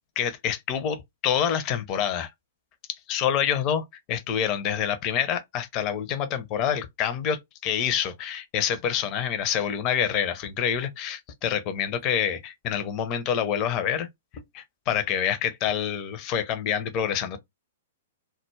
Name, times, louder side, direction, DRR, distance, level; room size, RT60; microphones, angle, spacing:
voice 1, 0.2-2.3 2.9-14.1 14.3-17.4, left 9 dB, 35° left, 0.5 m, -27 dB
2.2 x 2.0 x 3.0 m
figure-of-eight pair, 105°, 0 cm